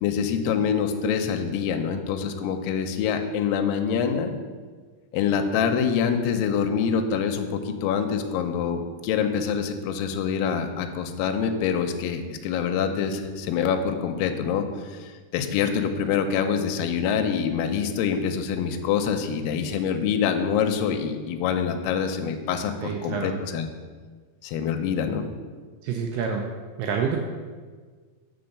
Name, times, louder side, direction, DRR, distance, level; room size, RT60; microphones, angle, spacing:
voice 1, 0.0-4.3 5.1-23.7 24.4-25.3, left 7 dB, 80° left, 6 dB, 2.2 m, -25 dB
voice 2, 22.8-23.4 25.8-26.4 26.8-27.2, right 6 dB, 85° right, 2 dB, 1.9 m, -27 dB
6.9 x 3.8 x 6.4 m, 1.5 s
omnidirectional pair, 4.5 m